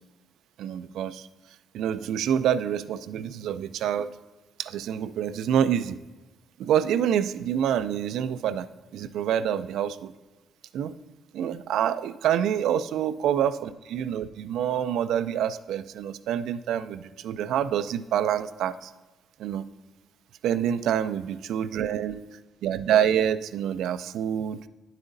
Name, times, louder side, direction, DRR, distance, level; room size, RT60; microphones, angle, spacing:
voice 1, 0.6-1.3 1.7-4.1 4.6-6.0 6.6-8.7 8.9-10.1 10.7-11.0 11.3-18.9 19.4-19.6 20.4-22.2 22.6-24.7, right 9 dB, 80° right, 14 dB, 0.3 m, -27 dB
9.7 x 8.1 x 2.6 m, 1.2 s
cardioid pair, 90°, 0 cm